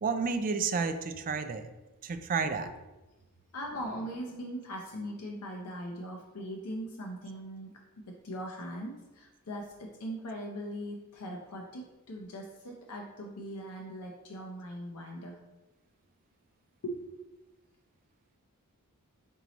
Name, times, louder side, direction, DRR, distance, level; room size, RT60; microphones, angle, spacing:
voice 1, 0.0-1.7 2.0-2.7, right 5 dB, 40° right, 9 dB, 0.3 m, -31 dB
voice 2, 3.5-15.4 16.8-17.1, equal, 85° left, 0 dB, 0.6 m, -40 dB
4.5 x 3.9 x 2.9 m, 1.1 s
head